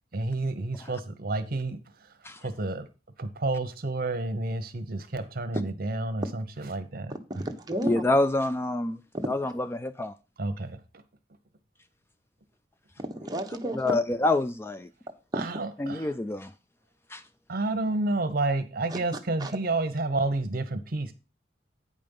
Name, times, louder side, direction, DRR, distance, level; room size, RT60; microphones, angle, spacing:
voice 1, 0.1-1.8 2.4-2.9 3.2-7.2 10.4-10.8 15.3-16.1 17.5-21.1, right 2 dB, 55° right, 1.0 m, -30 dB
voice 2, 7.3-8.0 13.0-14.0 15.3-15.4 18.9-19.0 19.4-19.5, right 1 dB, 25° right, 1.1 m, -32 dB
voice 3, 7.8-9.0 9.3-10.1 13.8-14.9 15.8-16.5 17.1-17.2, left 2 dB, 15° left, 0.3 m, -27 dB
8.6 x 5.3 x 5.4 m
head